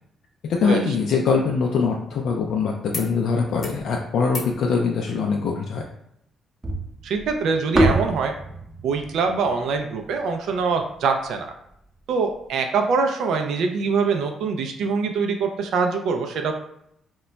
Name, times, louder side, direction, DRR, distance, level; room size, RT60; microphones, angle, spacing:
voice 1, 0.5-5.9, left 5 dB, 75° left, 0 dB, 0.3 m, -23 dB
sound 1, 2.9-3.1 3.4-3.8 4.3-4.6 5.9-6.0, left 3 dB, 40° left, 0.7 m, -39 dB
sound 2, 6.6-10.9, right 1 dB, 20° right, 0.5 m, -26 dB
voice 2, 7.0-8.3 8.8-11.5 12.1-16.5, right 5 dB, 75° right, 4 dB, 0.3 m, -24 dB
2.1 x 2.1 x 3.8 m, 0.77 s
cardioid pair, 90°, 0 cm